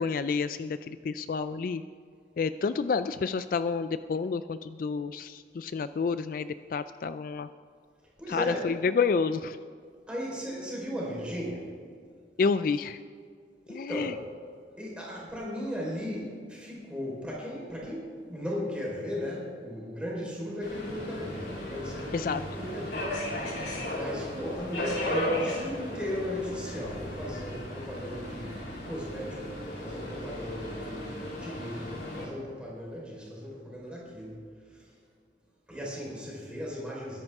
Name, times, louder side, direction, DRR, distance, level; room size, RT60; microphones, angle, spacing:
voice 1, 0.0-1.8 2.4-7.5 8.3-9.6 12.4-13.0 13.7-14.1 22.1-22.4, left 5 dB, 50° left, 12 dB, 0.3 m, -29 dB
voice 2, 8.2-8.7 10.1-11.7 13.7-14.2 14.8-23.1 23.9-29.5 29.8-34.9 35.7-37.2, equal, 5° right, -5 dB, 4.2 m, -37 dB
Subway metro underground, 20.6-32.2, left 1 dB, 70° left, 3.7 m, -35 dB
21.5 x 10.5 x 3.6 m, 2.1 s
head